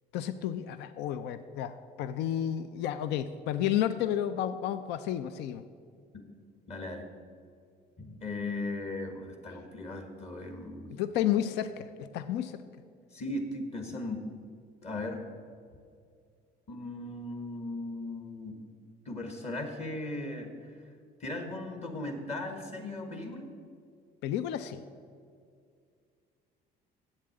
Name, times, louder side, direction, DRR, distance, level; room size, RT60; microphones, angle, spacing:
voice 1, 0.1-5.6 10.9-12.6 24.2-24.8, left 10 dB, 85° left, 12 dB, 0.5 m, -31 dB
voice 2, 6.7-7.1 8.0-10.9 13.1-14.2 14.8-15.2 16.7-18.6 19.0-20.8 21.2-23.5, left 2 dB, 40° left, 4 dB, 1.5 m, -37 dB
8.0 x 7.4 x 8.5 m, 2.2 s
cardioid pair, 110°, 17 cm